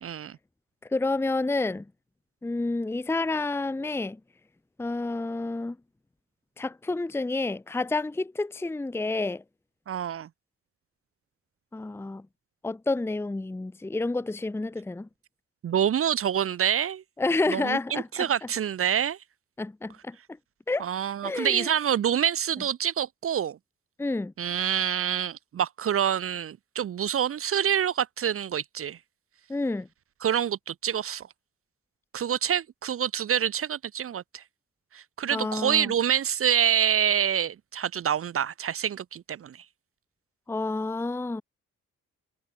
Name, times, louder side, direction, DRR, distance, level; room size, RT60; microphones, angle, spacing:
voice 1, 0.0-0.4 9.9-10.3 15.6-17.0 17.5-19.2 20.8-23.6 24.4-29.0 30.2-31.2 32.1-34.4 34.9-39.6, right 9 dB, 45° right, 0.8 m, -27 dB
voice 2, 0.9-1.8 2.4-4.2 4.8-5.8 6.6-9.4 11.7-12.3 12.6-15.1 17.2-18.3 19.6-20.2 20.7-20.9 21.2-21.7 24.0-24.3 29.5-29.9 35.3-35.9 40.5-41.4, left 2 dB, 10° left, 0.7 m, -29 dB
wide cardioid pair, 175°, 30 cm